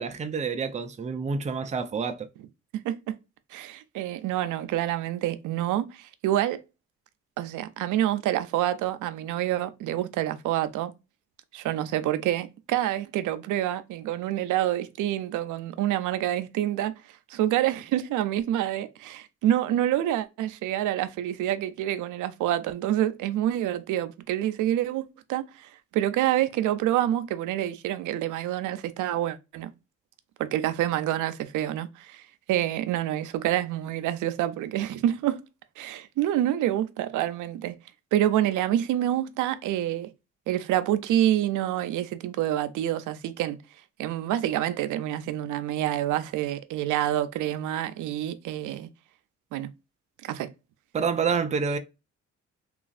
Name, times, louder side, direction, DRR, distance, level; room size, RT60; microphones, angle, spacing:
voice 1, 0.0-2.3 50.9-51.8, right 5 dB, 25° right, 0.5 m, -28 dB
voice 2, 2.8-3.2 3.5-6.6 7.4-10.9 11.5-16.9 17.3-29.7 30.4-32.2 32.5-35.4 35.8-37.8 38.1-40.1 40.5-43.6 44.0-48.9 49.5-49.7 50.2-50.5, right 12 dB, 80° right, 0.5 m, -27 dB
3.1 x 2.4 x 2.4 m
cardioid pair, 90°, 30 cm